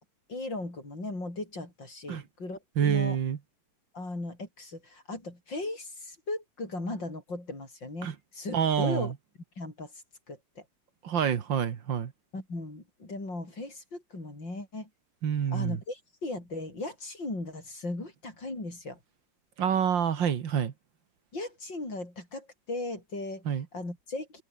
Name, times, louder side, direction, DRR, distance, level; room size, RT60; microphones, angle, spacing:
voice 1, 0.3-3.2 3.9-9.1 9.6-9.9 10.3-10.6 12.3-14.9 15.5-19.0 21.3-23.4 23.7-24.4, left 2 dB, 85° left, 8.7 m, -37 dB
voice 2, 2.8-3.4 8.0-8.2 8.5-9.1 11.0-12.1 15.2-15.8 19.6-20.7 23.5-23.7, right 8 dB, 85° right, 2.3 m, -27 dB
open air
omnidirectional pair, 2.0 m